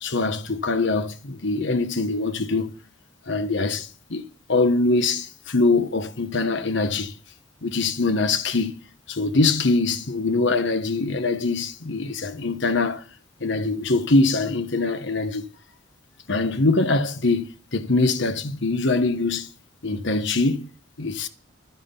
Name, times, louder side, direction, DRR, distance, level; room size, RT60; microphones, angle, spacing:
voice 1, 0.0-2.8 3.3-7.1 7.6-8.8 9.1-13.0 13.4-15.4 16.3-19.5 19.8-20.7 21.0-21.3, left 3 dB, 65° left, 1.3 m, -23 dB
12.5 x 9.5 x 5.5 m
head